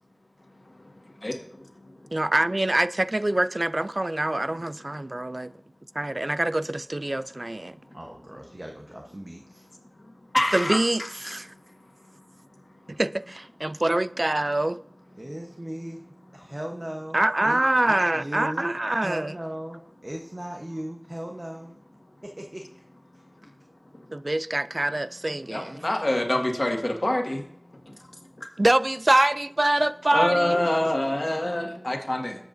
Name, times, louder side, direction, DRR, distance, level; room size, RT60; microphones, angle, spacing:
voice 1, 0.7-1.9 7.8-8.0 10.0-13.0 16.4-16.5 25.5-27.5 27.8-28.1 28.4-28.5 30.1-32.5, left 1 dB, 55° left, 1.7 m, -28 dB
voice 2, 2.1-5.5 6.0-7.8 10.5-11.5 12.9-14.8 17.1-19.3 24.1-25.8 28.6-30.6, right 1 dB, 55° right, 0.3 m, -25 dB
voice 3, 7.9-9.7 15.2-16.0 16.3-18.7 19.0-21.8 22.2-22.8 23.1-23.2, right 1 dB, 40° right, 1.0 m, -37 dB
19.0 x 7.9 x 2.6 m
wide cardioid pair, 40°, 0 cm